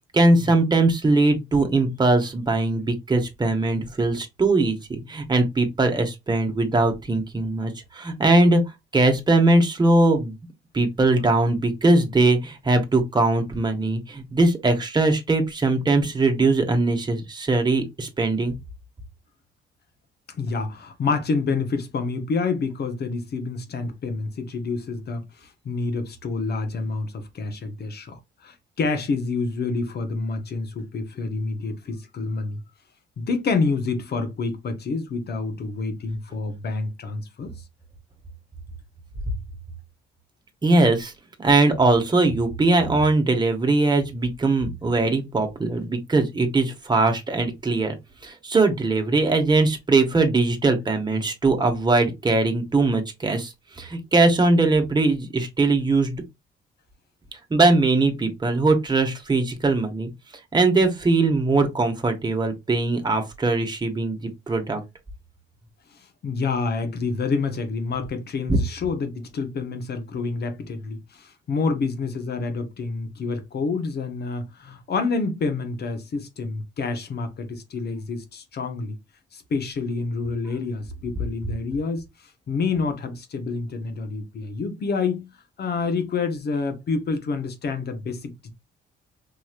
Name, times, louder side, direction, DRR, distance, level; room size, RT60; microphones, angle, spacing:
voice 1, 0.1-8.6 8.9-10.3 10.7-18.5 39.3-39.4 40.6-41.1 41.4-48.0 48.2-56.2 57.5-60.1 60.5-64.8 68.5-68.6, right 2 dB, 20° right, 1.1 m, -21 dB
voice 2, 20.3-32.6 33.2-37.5 65.9-79.0 79.3-82.0 82.5-85.3 85.6-88.5, left 4 dB, 55° left, 1.0 m, -28 dB
4.7 x 3.0 x 2.4 m
cardioid pair, 90°, 20 cm